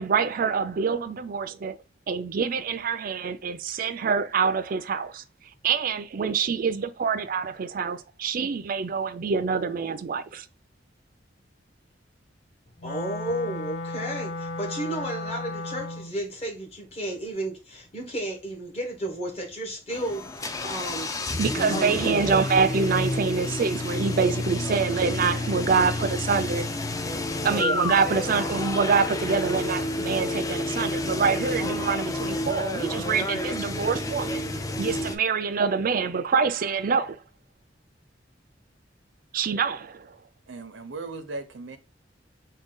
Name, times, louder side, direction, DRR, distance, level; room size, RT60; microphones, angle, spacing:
voice 1, 0.0-1.8 2.1-5.2 5.6-10.5 21.4-26.7 27.4-34.5 34.8-37.2 39.3-40.2, right 5 dB, 50° right, 0.4 m, -26 dB
Wind instrument woodwind instrument, 12.8-16.2, left 2 dB, 65° left, 0.7 m, -34 dB
voice 2, 12.8-21.1 21.7-22.3 27.0-27.9, right 1 dB, 35° left, 1.0 m, -33 dB
sound 1, 19.9-35.2, left 2 dB, 20° left, 0.3 m, -30 dB
voice 3, 40.5-41.8, right 3 dB, 90° right, 0.6 m, -37 dB
3.7 x 2.2 x 3.7 m
head